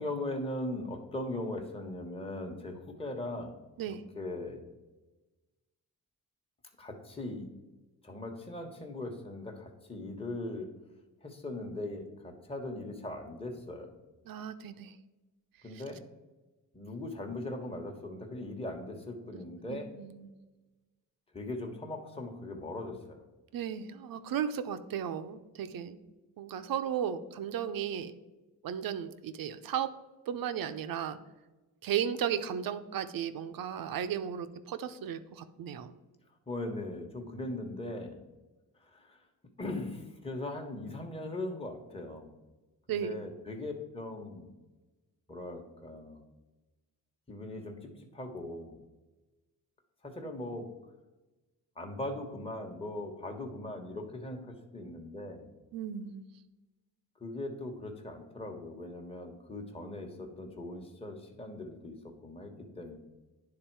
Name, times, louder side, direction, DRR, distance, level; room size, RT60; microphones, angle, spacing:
voice 1, 0.0-3.6 3.8-4.7 6.8-7.5 8.0-10.7 11.2-13.9 15.6-16.0 16.7-19.9 21.3-23.2 36.5-38.2 38.8-39.2 39.6-42.3 42.9-44.5 45.3-46.2 47.3-48.8 50.0-50.7 51.8-55.5 57.2-63.0, left 2 dB, 15° left, 2 dB, 1.1 m, -39 dB
voice 2, 14.3-14.9 19.7-20.3 23.5-26.0 26.4-28.2 28.6-29.9 30.3-31.2 31.8-35.9 42.9-43.2 55.7-56.2, right 9 dB, 65° right, 11 dB, 0.6 m, -35 dB
9.6 x 3.6 x 4.6 m, 1.1 s
cardioid pair, 75°, 37 cm